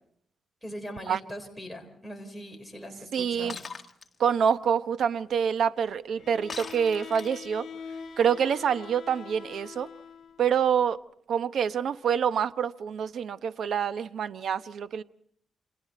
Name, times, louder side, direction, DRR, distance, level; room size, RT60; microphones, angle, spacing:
voice 1, 0.6-3.6, equal, ahead, 4.1 m, -41 dB
voice 2, 3.1-3.6 4.2-7.7 8.2-9.9 10.4-11.0 11.3-15.0, right 7 dB, 65° right, 0.8 m, -26 dB
Shatter, 3.5-4.1 6.5-7.5, left 5 dB, 30° left, 1.8 m, -40 dB
Bowed string instrument, 6.2-10.5, left 6 dB, 55° left, 2.6 m, -44 dB
29.5 x 26.5 x 4.2 m
wide cardioid pair, 140°, 0 cm